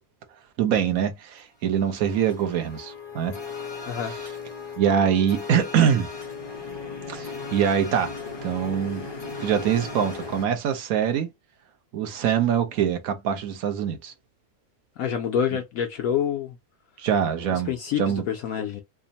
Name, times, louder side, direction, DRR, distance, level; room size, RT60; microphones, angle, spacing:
voice 1, 0.6-3.4 4.8-6.1 7.1-8.1 8.4-9.0 9.4-11.3 11.9-14.1 17.0-18.2, right 8 dB, 70° right, 1.2 m, -24 dB
sound 1, 1.8-10.5, left 4 dB, 30° left, 0.5 m, -37 dB
voice 2, 3.9-4.2 15.0-16.6 17.5-18.8, left 8 dB, 70° left, 1.0 m, -27 dB
3.4 x 2.1 x 3.9 m
omnidirectional pair, 1.6 m